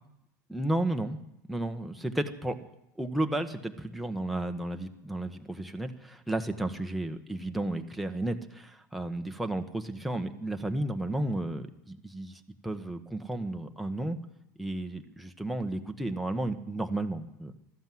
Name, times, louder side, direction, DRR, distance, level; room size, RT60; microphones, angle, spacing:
voice 1, 0.5-1.2 1.5-2.6 3.0-14.2 14.6-17.5, right 1 dB, ahead, 4 dB, 1.2 m, -33 dB
14.5 x 12.5 x 7.8 m, 0.84 s
hypercardioid pair, 90°, 10 cm